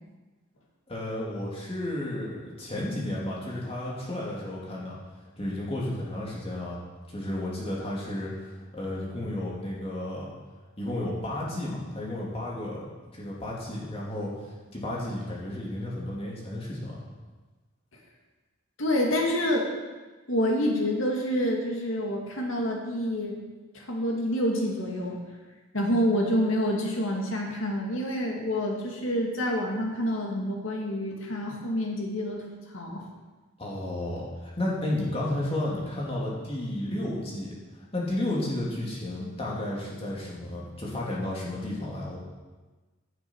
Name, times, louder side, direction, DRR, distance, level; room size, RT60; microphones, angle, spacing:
voice 1, 0.9-5.0 5.4-6.8 7.1-8.3 8.7-10.3 10.8-14.4 14.7-17.0 33.6-37.5 37.9-42.2, left 1 dB, 30° left, -5 dB, 2.8 m, -32 dB
voice 2, 18.8-19.7 20.3-23.4 23.7-25.2 25.7-32.4 32.7-33.1, equal, 75° left, 0 dB, 2.2 m, -27 dB
15.5 x 7.9 x 4.7 m, 1.3 s
head